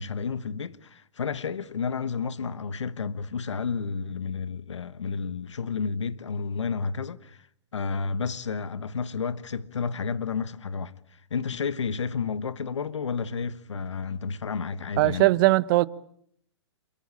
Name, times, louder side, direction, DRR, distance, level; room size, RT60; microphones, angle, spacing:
voice 1, 0.0-7.5 7.7-15.3, left 5 dB, 85° left, 1.3 m, -31 dB
voice 2, 15.0-15.9, right 20 dB, 50° right, 1.2 m, -20 dB
28.0 x 23.0 x 8.8 m
hypercardioid pair, 125°, 15 cm